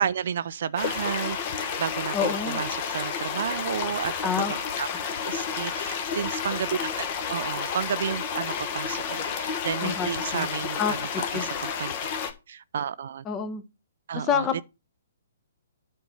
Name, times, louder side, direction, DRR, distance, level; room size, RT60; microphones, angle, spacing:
voice 1, 0.0-4.3 4.8-11.0 11.3-11.9 12.5-13.2 14.1-14.6, right 8 dB, 55° right, 0.4 m, -32 dB
sound 1, 0.8-12.3, left 7 dB, 35° left, 1.3 m, -31 dB
voice 2, 2.1-2.6 4.2-4.5 9.8-10.5 10.8-10.9 11.3-11.5 13.2-13.6 14.1-14.6, left 7 dB, 20° left, 1.0 m, -27 dB
9.6 x 4.4 x 5.5 m
figure-of-eight pair, 125°, 0 cm